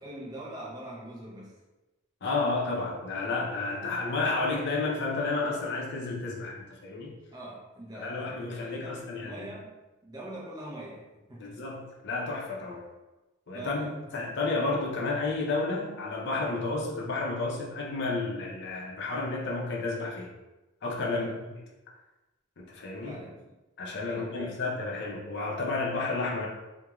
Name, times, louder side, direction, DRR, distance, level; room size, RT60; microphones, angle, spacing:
voice 1, 0.0-1.6 7.3-9.8 10.0-11.6 13.5-14.0 21.1-21.3 23.0-23.3 24.0-24.6, right 1 dB, 20° right, -5 dB, 0.5 m, -43 dB
voice 2, 2.2-7.2 7.9-9.5 11.4-12.9 13.5-20.3 20.8-21.3 22.6-23.2 23.8-26.5, left 3 dB, 55° left, -2 dB, 0.5 m, -31 dB
2.3 x 2.2 x 2.9 m, 1.1 s
head